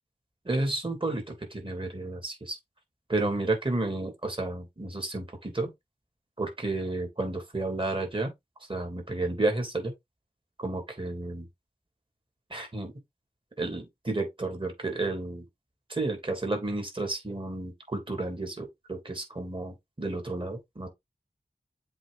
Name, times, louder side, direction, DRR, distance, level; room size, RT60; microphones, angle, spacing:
voice 1, 0.4-1.2 1.5-2.6 3.1-5.7 6.4-8.3 8.7-9.9 10.6-11.5 12.5-12.9 13.6-15.4 15.9-20.9, right 2 dB, 35° right, 3.0 m, -31 dB
7.6 x 3.7 x 3.8 m
wide cardioid pair, 70°, 16 cm